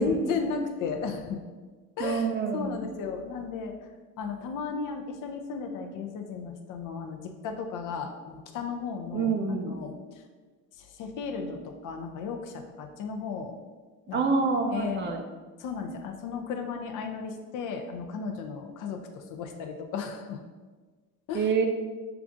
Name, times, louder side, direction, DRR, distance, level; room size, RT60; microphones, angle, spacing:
voice 1, 0.0-1.4 2.0-2.3 2.5-3.7 4.2-9.9 10.8-13.6 14.1-14.2 14.7-15.1 15.6-20.4 21.3-21.5, left 5 dB, 55° left, 4 dB, 0.6 m, -34 dB
voice 2, 2.0-2.9 9.1-9.7 14.1-15.2 21.3-21.7, right 4 dB, 30° right, 3 dB, 0.5 m, -27 dB
5.7 x 2.4 x 2.5 m, 1.4 s
supercardioid pair, 85°, 38 cm